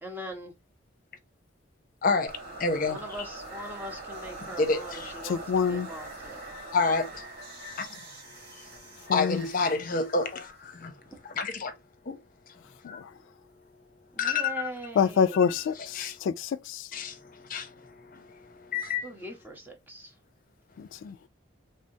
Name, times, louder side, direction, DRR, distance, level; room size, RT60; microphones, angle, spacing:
voice 1, 0.0-0.5 2.9-6.5 14.2-15.6 19.0-20.1, equal, 10° right, 0.8 m, -41 dB
voice 2, 2.0-3.3 4.4-5.3 6.7-7.3 7.8-8.0 8.4-10.9 11.2-11.7 12.1-12.2 12.5-12.6 12.8-13.0 14.2-14.7 15.8-16.2 16.9-19.1, left 4 dB, 45° left, 0.7 m, -30 dB
sound 1, 2.3-11.3, right 2 dB, 50° right, 1.9 m, -43 dB
voice 3, 5.2-5.9 9.1-9.4 12.8-13.0 15.0-16.9 20.8-21.1, left 6 dB, 80° left, 0.3 m, -27 dB
3.4 x 3.3 x 2.7 m
head